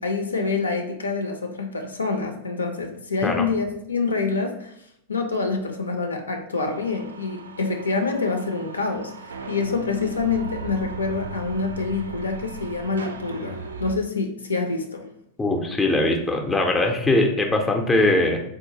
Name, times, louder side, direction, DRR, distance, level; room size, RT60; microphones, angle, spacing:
voice 1, 0.0-4.7 5.1-15.0, left 4 dB, 75° left, 4 dB, 0.5 m, -26 dB
sound 1, 6.7-13.9, right 4 dB, 70° right, 0.3 m, -37 dB
voice 2, 15.4-18.4, left 2 dB, 10° left, 2 dB, 0.5 m, -21 dB
3.7 x 2.4 x 2.7 m, 0.73 s
figure-of-eight pair, 90°, 0 cm